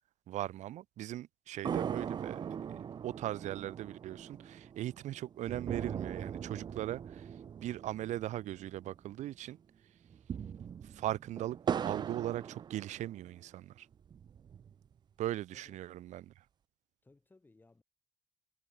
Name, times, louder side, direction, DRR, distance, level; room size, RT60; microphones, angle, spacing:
voice 1, 0.3-7.3 7.6-9.6 10.8-13.9 15.2-16.3, right 14 dB, 80° right, 0.9 m, -39 dB
sound 1, 1.6-9.2 9.5-9.6 10.1-13.4 13.9-14.9, right 8 dB, 35° right, 0.5 m, -40 dB
voice 2, 15.5-15.8 17.0-17.8, left 3 dB, 15° left, 4.2 m, -63 dB
cardioid pair, 135°, 12 cm